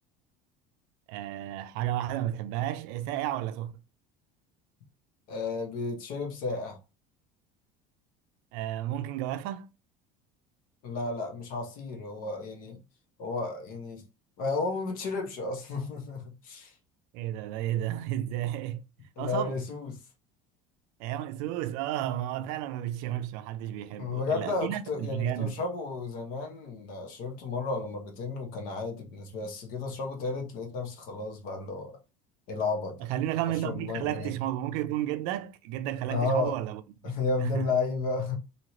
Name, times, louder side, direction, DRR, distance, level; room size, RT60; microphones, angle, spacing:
voice 1, 1.1-3.7 8.5-9.7 17.1-18.9 19.2-19.6 21.0-25.6 33.0-37.7, right 12 dB, 70° right, 0.4 m, -32 dB
voice 2, 5.3-6.8 10.8-12.8 13.2-14.0 14.4-16.7 19.2-20.0 24.0-32.0 32.5-33.0 33.6-34.3 36.1-36.6 37.0-38.4, left 3 dB, 55° left, 1.0 m, -32 dB
3.0 x 2.8 x 2.8 m
cardioid pair, 165°, 17 cm